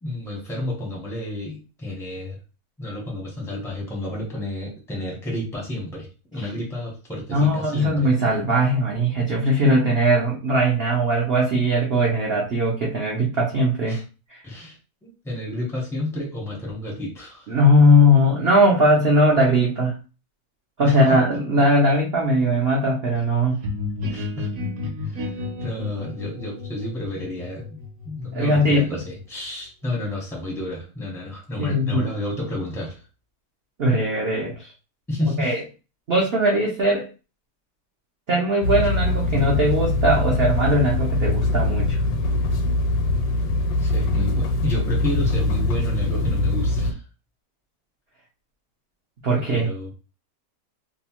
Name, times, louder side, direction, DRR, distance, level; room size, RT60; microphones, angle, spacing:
voice 1, 0.0-2.4 2.8-8.1 13.9-14.0 14.4-17.5 20.8-21.2 24.1-24.5 25.1-25.3 25.6-33.0 35.1-35.5 43.8-47.0 49.3-49.9, left 1 dB, 5° left, -3 dB, 0.3 m, -31 dB
voice 2, 7.3-14.0 14.3-14.4 17.5-19.9 20.8-23.6 28.3-29.0 31.6-32.1 33.8-34.7 35.4-35.6 36.1-37.1 38.3-42.0 49.2-49.7, equal, 80° right, -2 dB, 0.5 m, -19 dB
sound 1, 23.6-29.3, left 3 dB, 65° right, 1.0 m, -32 dB
sound 2, 38.6-46.9, left 2 dB, 80° left, 1.2 m, -22 dB
2.9 x 2.0 x 2.8 m, 0.32 s
omnidirectional pair, 1.9 m